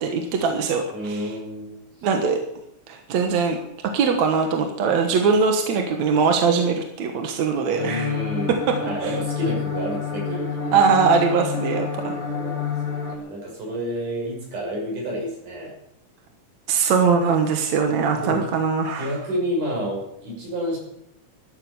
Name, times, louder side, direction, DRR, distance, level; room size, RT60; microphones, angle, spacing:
voice 1, 0.0-1.3 2.0-2.4 2.9-3.6 3.9-8.1 8.5-8.8 9.0-9.1 10.7-12.2 16.7-19.1, right 5 dB, 65° right, 4 dB, 2.6 m, -21 dB
voice 2, 0.9-1.7 2.0-2.1 7.7-8.6 8.8-10.8 11.9-15.7 18.1-18.4 19.0-20.8, equal, 90° right, -1 dB, 7.6 m, -30 dB
sound 1, 7.8-13.2, left 5 dB, 20° left, 1.7 m, -28 dB
13.5 x 12.5 x 7.1 m, 0.77 s
omnidirectional pair, 3.5 m